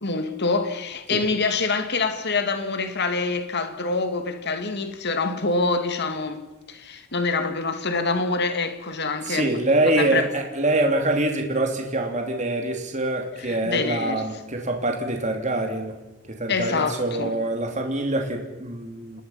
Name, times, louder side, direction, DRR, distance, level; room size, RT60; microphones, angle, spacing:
voice 1, 0.0-6.4 6.7-10.3 13.4-14.2 16.5-17.4, left 3 dB, 55° left, 2.1 m, -26 dB
voice 2, 9.2-15.9 16.3-19.2, right 2 dB, 35° right, 2.9 m, -25 dB
28.0 x 20.0 x 5.8 m
head